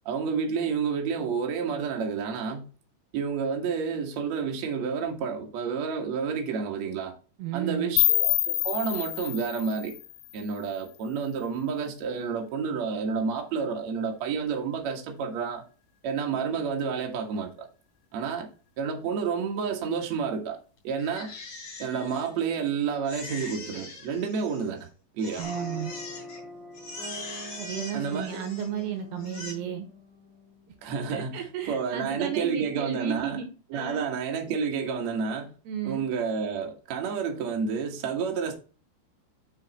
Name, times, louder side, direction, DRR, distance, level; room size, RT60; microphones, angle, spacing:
voice 1, 0.1-2.7 3.1-7.1 7.5-9.9 10.3-15.6 16.0-17.7 18.1-18.5 18.8-21.3 21.8-24.9 25.1-25.4 27.9-28.4 30.8-33.4 33.7-35.5 35.8-38.5, right 6 dB, 60° right, 1.9 m, -30 dB
voice 2, 7.4-7.9 25.4-25.9 27.6-29.9 31.1-34.1 35.7-36.1, right 9 dB, 75° right, 2.8 m, -34 dB
sound 1, 8.0-10.9, left 16 dB, 85° left, 2.9 m, -27 dB
Crying sobbing, 21.0-22.7 23.1-24.8 25.2-26.4 26.7-28.8 29.2-29.5, left 3 dB, 30° left, 4.0 m, -42 dB
sound 2, 25.4-30.9, left 1 dB, 25° right, 3.6 m, -42 dB
6.5 x 6.4 x 4.1 m
omnidirectional pair, 5.2 m